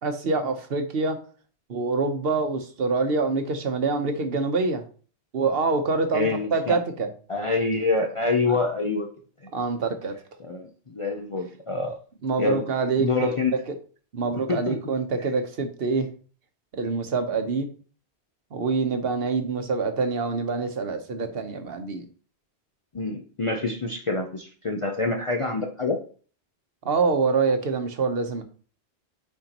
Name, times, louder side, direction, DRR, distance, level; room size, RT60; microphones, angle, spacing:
voice 1, 0.0-1.2 1.7-4.8 5.3-7.1 9.5-10.1 12.2-13.3 13.7-13.8 14.1-16.1 16.7-17.7 18.5-22.0 26.8-28.4, right 4 dB, 60° right, 7 dB, 1.1 m, -25 dB
voice 2, 6.1-6.8 7.3-9.1 9.4-9.5 10.4-12.0 12.4-12.6 13.0-13.6 14.5-14.8 22.9-26.0, left 3 dB, 35° left, 3 dB, 0.6 m, -26 dB
9.1 x 4.4 x 2.9 m, 0.42 s
omnidirectional pair, 1.1 m